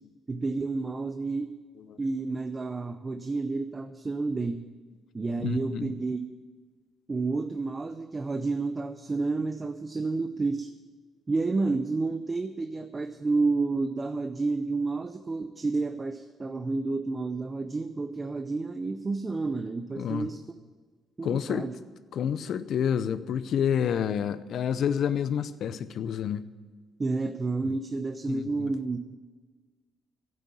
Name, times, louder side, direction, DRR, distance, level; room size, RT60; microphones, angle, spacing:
voice 1, 0.3-1.5 2.0-4.6 5.1-6.2 7.1-10.7 11.3-20.6 21.2-21.7 27.0-29.2, right 3 dB, 25° right, 8 dB, 0.6 m, -30 dB
voice 2, 5.4-5.9 20.0-20.3 21.2-21.7 22.1-26.4 28.3-28.7, left 8 dB, 70° left, 14 dB, 0.6 m, -29 dB
11.0 x 8.3 x 9.7 m, 1.4 s
cardioid pair, 90°, 0 cm